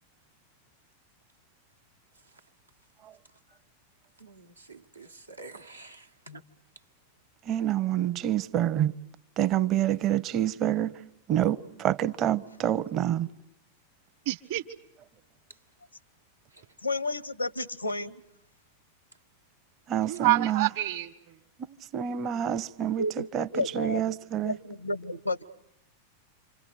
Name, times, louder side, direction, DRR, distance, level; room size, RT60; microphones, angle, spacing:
voice 1, 4.2-6.4, right 2 dB, 85° right, 1.3 m, -48 dB
voice 2, 7.5-8.9 9.4-10.9 11.3-13.3 19.9-20.7 21.9-23.5 23.7-24.6, right 11 dB, 35° right, 0.9 m, -27 dB
voice 3, 14.2-14.6 20.0-21.1, right 16 dB, 50° right, 1.5 m, -27 dB
voice 4, 16.8-18.2 23.0-24.1 24.4-25.4, left 2 dB, 85° left, 1.1 m, -32 dB
28.5 x 26.0 x 6.7 m
figure-of-eight pair, 90°, 0 cm